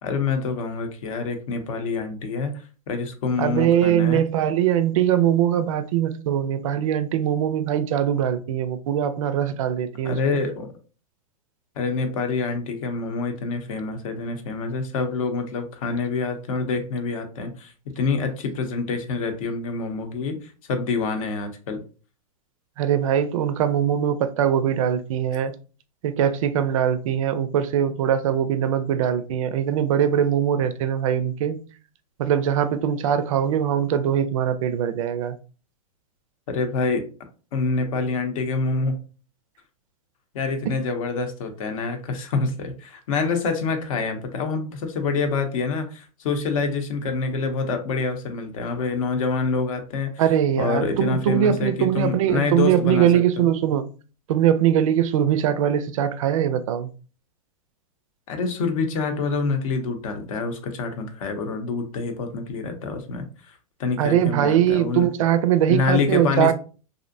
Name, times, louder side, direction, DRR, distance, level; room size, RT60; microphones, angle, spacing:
voice 1, 0.0-4.3 10.0-10.7 11.8-21.8 36.5-37.1 37.5-39.0 40.3-50.2 50.6-53.1 53.4-53.5 58.3-65.1 65.7-66.5, left 4 dB, 60° left, 0.7 m, -26 dB
voice 2, 3.4-10.2 22.8-25.5 26.0-31.6 32.2-35.4 40.6-40.8 50.2-53.9 54.3-56.9 64.0-66.5, right 10 dB, 60° right, 0.4 m, -21 dB
2.5 x 2.1 x 2.5 m
hypercardioid pair, 135°, 19 cm